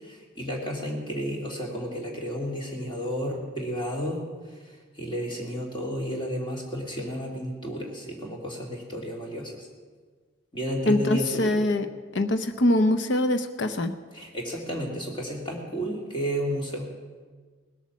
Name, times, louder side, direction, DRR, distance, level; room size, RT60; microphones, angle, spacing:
voice 1, 0.0-4.2 5.0-9.7 10.5-11.6 14.1-16.9, equal, 25° left, -1 dB, 2.8 m, -32 dB
voice 2, 10.9-11.9 12.1-13.9, left 1 dB, 60° left, 9 dB, 0.7 m, -23 dB
19.5 x 8.3 x 7.3 m, 1.5 s
head